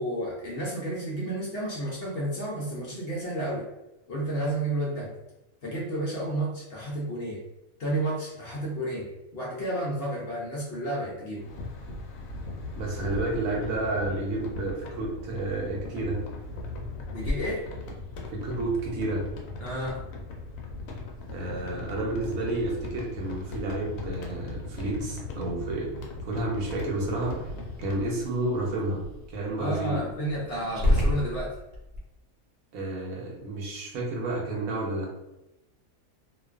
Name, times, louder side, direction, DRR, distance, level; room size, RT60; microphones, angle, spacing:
voice 1, 0.0-3.6 4.1-5.1 5.6-7.4 7.8-11.5 17.1-17.6 19.6-20.0 29.6-31.6, right 1 dB, 60° left, -4 dB, 0.7 m, -31 dB
sound 1, 11.4-28.1, left 3 dB, 80° left, 1.0 m, -39 dB
voice 2, 12.8-16.2 18.3-19.2 21.3-25.9 26.2-27.5 27.8-29.0 29.3-30.0 32.7-35.1, right 2 dB, 80° right, -1 dB, 1.1 m, -30 dB
Growling, 17.2-32.0, left 1 dB, 55° right, 0.9 m, -35 dB
2.4 x 2.3 x 2.3 m, 0.95 s
omnidirectional pair, 1.4 m